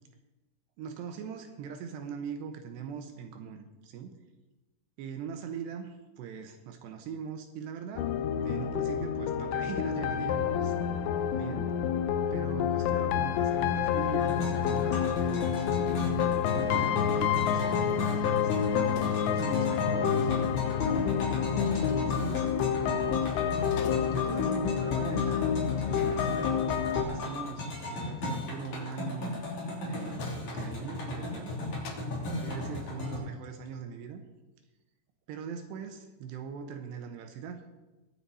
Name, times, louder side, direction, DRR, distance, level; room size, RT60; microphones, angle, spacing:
voice 1, 0.8-4.2 5.0-10.7 11.3-11.8 12.3-15.6 16.0-18.5 19.0-21.3 21.9-22.7 24.1-25.6 25.9-26.6 26.9-29.4 29.8-31.8 32.2-34.2 35.3-37.6, right 6 dB, 75° right, 6 dB, 2.7 m, -41 dB
sound 1, 8.0-27.1, left 8 dB, 85° left, 3.2 m, -28 dB
sound 2, 14.2-33.2, left 2 dB, 40° left, 4.3 m, -36 dB
sound 3, 14.6-14.8 15.1-16.3 16.7-18.1 18.5-18.6 19.0-20.5 21.6-22.1 22.6-23.3 23.5-24.5 25.6-25.8 26.6-27.1 28.6-29.0 30.2-31.4 31.8-32.1, left 5 dB, 70° left, 2.6 m, -49 dB
22.5 x 7.6 x 4.2 m, 1.1 s
omnidirectional pair, 5.6 m